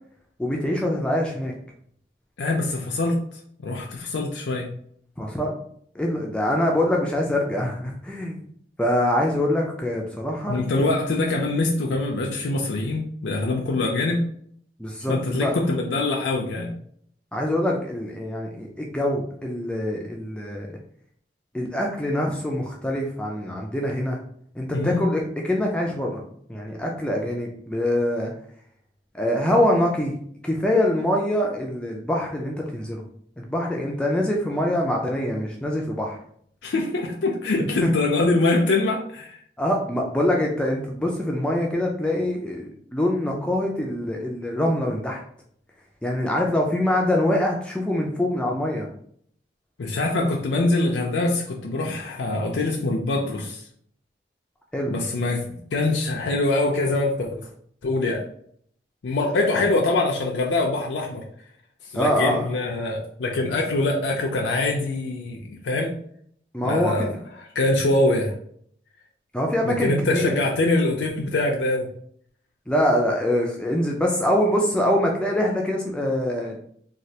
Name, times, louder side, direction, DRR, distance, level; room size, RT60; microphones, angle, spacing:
voice 1, 0.4-1.5 5.2-5.5 6.0-8.4 8.8-10.9 14.8-15.1 15.4-15.6 17.3-20.8 21.5-24.2 24.6-25.2 25.5-28.3 29.1-30.1 30.4-33.0 33.4-36.2 37.8-37.9 39.6-42.6 42.9-45.2 46.0-48.9 54.7-54.9 61.9-62.5 66.5-67.2 69.3-70.4 72.7-76.6, left 1 dB, 5° left, 0 dB, 0.3 m, -24 dB
voice 2, 2.4-3.2 3.6-4.7 10.5-14.2 15.1-16.7 24.7-25.0 36.6-39.4 49.8-53.6 54.9-57.5 57.8-58.2 59.0-61.2 61.9-66.0 66.6-67.1 67.6-68.3 69.6-71.9, left 2 dB, 85° left, 0 dB, 0.4 m, -24 dB
3.1 x 2.3 x 2.7 m, 0.63 s
head